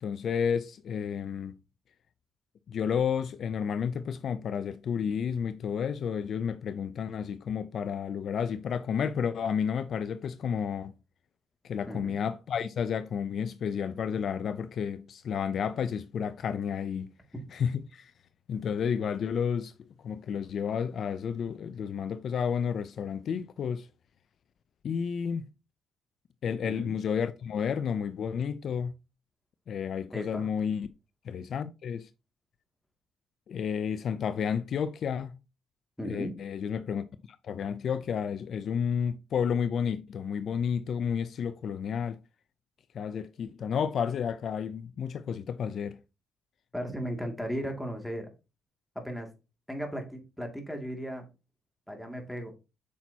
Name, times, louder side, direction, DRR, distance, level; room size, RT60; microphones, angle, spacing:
voice 1, 0.0-1.6 2.7-10.9 11.6-17.1 17.5-18.1 18.5-19.7 20.0-23.9 24.8-25.4 26.4-28.9 29.7-30.9 31.2-32.1 33.5-35.4 36.0-42.2 42.9-46.0, left 7 dB, 60° left, 0.5 m, -31 dB
voice 2, 11.9-12.2 26.6-26.9 30.1-30.5 36.0-36.3 46.7-48.3 49.0-49.3 49.7-51.3 51.9-52.5, equal, ahead, 2.3 m, -36 dB
8.4 x 6.0 x 2.8 m
cardioid pair, 90°, 0 cm